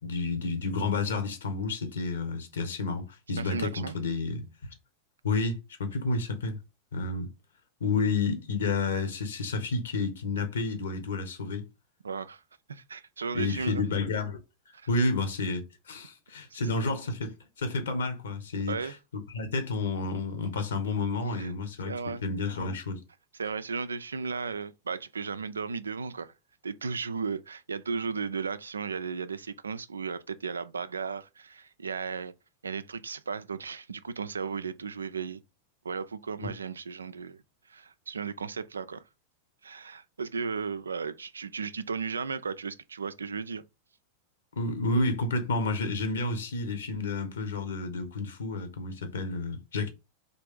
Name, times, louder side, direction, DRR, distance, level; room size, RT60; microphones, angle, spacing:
voice 1, 0.0-4.5 5.2-6.6 6.9-7.3 7.8-11.6 13.3-14.4 14.9-18.9 19.3-21.9 22.2-23.0 36.4-36.5 44.6-49.9, left 3 dB, 65° left, 1.2 m, -30 dB
voice 2, 3.4-4.0 12.0-12.4 12.7-13.8 14.7-14.9 16.5-17.0 18.7-19.0 21.3-21.5 21.9-22.2 23.3-26.3 26.6-32.3 32.6-35.4 35.8-37.4 37.7-39.0 39.6-43.6, right 5 dB, 75° right, 0.4 m, -35 dB
4.0 x 3.3 x 3.6 m
figure-of-eight pair, 90°, 0 cm